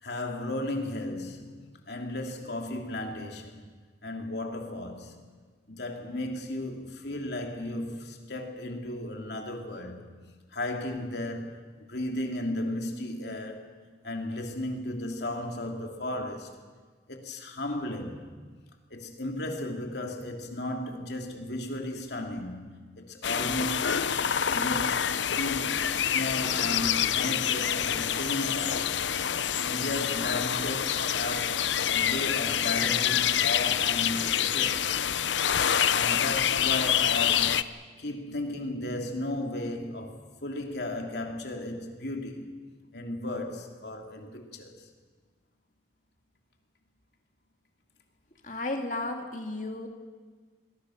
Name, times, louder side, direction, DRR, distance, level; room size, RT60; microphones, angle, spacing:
voice 1, 0.0-3.6 4.0-5.1 5.7-10.0 10.5-13.7 14.0-16.6 17.1-18.3 18.9-24.1 24.5-28.9 29.2-35.1 35.9-37.6 38.0-42.6 42.9-44.9, left 1 dB, 65° left, 3.1 m, -35 dB
sound 1, 23.2-37.6, left 9 dB, 80° left, 0.7 m, -27 dB
voice 2, 48.4-49.9, left 2 dB, 40° left, 2.3 m, -33 dB
28.0 x 21.0 x 6.6 m
head